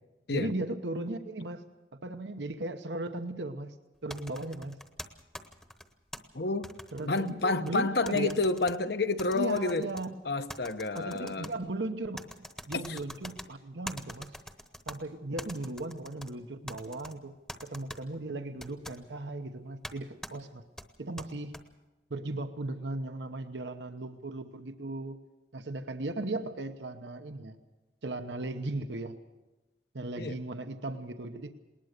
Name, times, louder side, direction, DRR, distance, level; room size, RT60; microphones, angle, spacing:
voice 1, 0.3-1.6 2.0-3.7 4.0-4.8 6.9-8.4 9.3-10.2 10.9-12.2 12.7-14.4 14.9-17.3 17.6-20.6 21.0-21.6 22.1-25.2 25.5-27.6 28.0-29.2 29.9-31.5, right 2 dB, 90° right, 8 dB, 1.0 m, -37 dB
sound 1, 4.1-6.2 6.6-7.8 8.1-8.8 9.2-10.1 10.5-11.5 12.2-13.5 13.9-15.0 15.4-16.3 16.7-17.1 17.5-18.0 18.6-19.0 19.8-19.9 20.2-20.3 20.8-21.6, equal, 5° left, 0.9 m, -44 dB
voice 2, 6.3-6.7 7.0-9.9 10.2-11.5 12.7-13.0 30.2-30.4, left 3 dB, 70° left, 10 dB, 1.0 m, -29 dB
20.0 x 19.5 x 6.7 m, 1.1 s
head